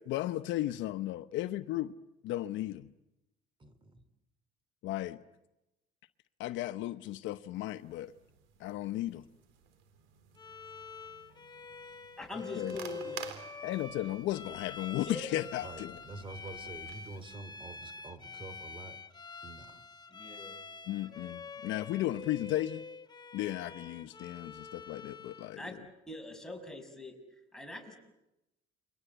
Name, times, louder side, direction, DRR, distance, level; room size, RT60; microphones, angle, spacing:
voice 1, 0.0-1.9 2.2-2.9 4.8-5.2 6.4-8.1 8.6-9.2 12.6-12.7 13.6-16.0 20.9-22.8 23.3-25.6, left 14 dB, 80° left, 1.0 m, -35 dB
voice 2, 3.6-4.0 12.3-12.6 15.6-19.0 19.4-19.8, right 3 dB, 25° right, 2.9 m, -47 dB
sound 1, 7.5-17.4, right 8 dB, 90° right, 3.9 m, -52 dB
Bowed string instrument, 10.4-25.6, left 5 dB, 20° left, 1.7 m, -46 dB
voice 3, 12.2-13.2 15.0-15.3 20.1-20.6 25.6-25.8 26.1-27.2 27.5-28.0, left 2 dB, 5° left, 6.1 m, -42 dB
30.0 x 23.5 x 8.1 m
cardioid pair, 115°, 19 cm